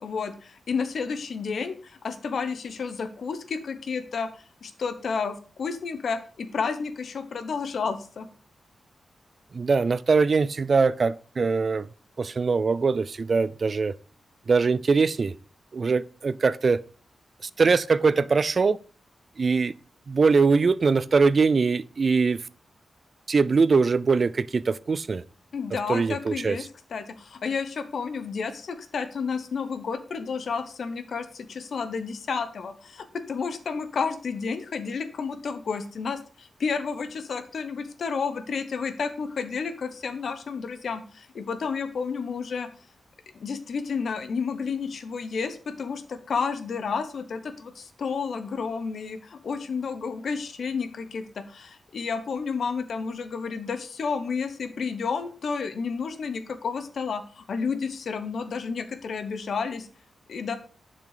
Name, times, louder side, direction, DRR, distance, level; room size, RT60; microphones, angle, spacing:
voice 1, 0.0-8.3 25.5-26.6 26.9-42.7 43.3-59.9 60.3-60.6, left 5 dB, 60° left, 1.1 m, -31 dB
voice 2, 9.5-11.9 12.2-13.9 14.5-15.3 15.7-16.8 17.4-18.8 19.4-19.7 20.1-22.4 23.3-25.2 25.9-26.6, right 4 dB, 40° right, 0.4 m, -22 dB
7.3 x 6.0 x 4.9 m
wide cardioid pair, 140°, 0 cm